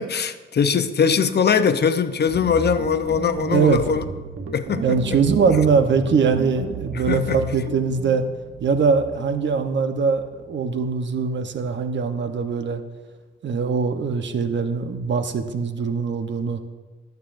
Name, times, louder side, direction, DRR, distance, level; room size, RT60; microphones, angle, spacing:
voice 1, 0.0-4.0 4.5-5.2 6.9-7.4, left 6 dB, 55° left, 0.8 m, -21 dB
sound 1, 2.3-11.7, right 4 dB, 80° right, 1.2 m, -35 dB
voice 2, 3.5-3.8 4.8-8.3 8.6-12.8 13.4-16.6, right 5 dB, 65° right, 1.0 m, -22 dB
20.5 x 8.1 x 2.6 m
cardioid pair, 60°, 21 cm